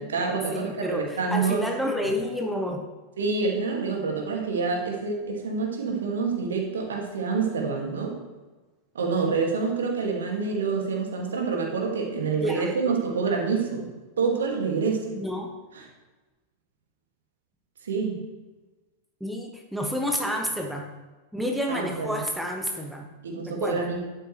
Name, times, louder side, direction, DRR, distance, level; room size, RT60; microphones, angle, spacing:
voice 1, 0.0-1.7 3.2-8.2 8.9-13.9 14.2-15.2 15.7-15.8 17.8-18.2 21.7-22.2 23.2-24.0, right 4 dB, 65° right, 0 dB, 2.4 m, -27 dB
voice 2, 0.5-2.8 12.4-13.0 15.1-15.5 19.2-20.9 21.3-23.1 23.5-23.9, equal, ahead, 1 dB, 1.2 m, -29 dB
11.5 x 8.6 x 3.4 m, 1.2 s
figure-of-eight pair, 90°, 0 cm